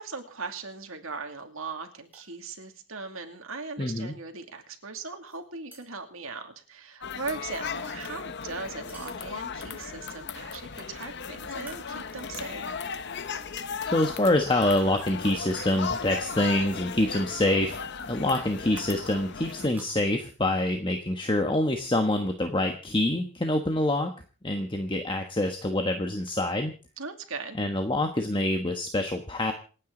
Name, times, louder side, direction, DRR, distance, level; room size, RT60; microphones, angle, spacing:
voice 1, 0.0-12.6 27.0-27.6, right 4 dB, 65° right, 5 dB, 2.5 m, -39 dB
sound 1, 2.0-2.4 5.3-6.1 8.7-9.7 11.5-12.5 13.0-13.1 14.6-14.7 15.9-16.1 17.1-17.3 17.6-17.7 19.6-20.0, right 2 dB, 10° right, 5.3 m, -53 dB
voice 2, 3.8-4.1 13.8-17.8 18.1-24.1 24.4-26.7 27.5-29.5, left 1 dB, 20° left, 5 dB, 1.3 m, -26 dB
sound 2, 7.0-19.7, left 5 dB, 50° left, 0.9 m, -36 dB
27.5 x 9.4 x 3.9 m, 0.39 s
head